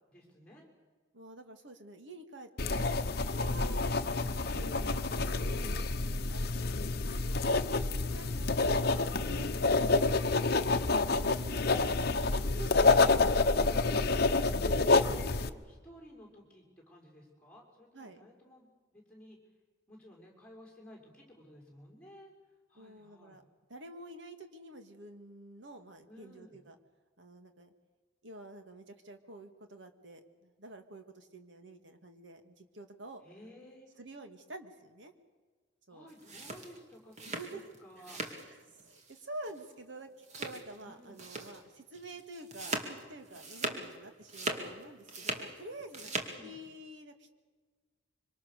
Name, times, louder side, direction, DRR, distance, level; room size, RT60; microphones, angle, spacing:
voice 1, 0.1-0.7 8.1-8.5 15.3-19.4 19.9-22.3 22.7-23.4 26.1-26.6 33.2-33.9 35.9-38.2 40.8-41.2 46.0-46.6, equal, 5° left, 0 dB, 6.2 m, -55 dB
voice 2, 1.1-7.4 7.7-10.9 11.2-13.3 14.2-14.6 15.1-15.4 17.9-18.3 22.7-23.4 23.7-26.8 27.2-27.7 28.2-33.2 34.0-35.1 35.9-36.1 37.3-37.7 38.1-46.1 46.4-47.3, right 1 dB, 70° right, 6 dB, 2.3 m, -49 dB
sound 1, 2.6-15.5, left 3 dB, 50° left, 0.9 m, -28 dB
sound 2, 36.1-38.5 38.8-39.2 39.4-39.6 40.2-40.8 41.2-41.6 41.9-43.9 44.2-45.5 45.8-46.3, right 2 dB, 35° right, 2.4 m, -39 dB
25.5 x 25.0 x 6.8 m, 1.4 s
head